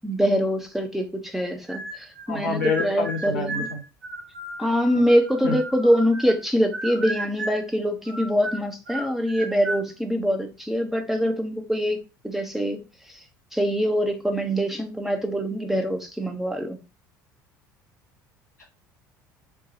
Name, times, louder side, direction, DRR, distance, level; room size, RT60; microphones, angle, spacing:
voice 1, 0.0-3.7 4.6-12.8 13.5-16.8, equal, 5° right, 0.6 m, -24 dB
sound 1, 1.7-2.3 2.6-6.4 6.7-7.7 8.0-9.9, right 2 dB, 70° right, 0.9 m, -34 dB
voice 2, 2.3-3.8 4.9-5.0 5.4-5.6 18.6-18.7, left 4 dB, 80° left, 0.8 m, -28 dB
4.5 x 2.2 x 2.7 m
figure-of-eight pair, 60°, 9 cm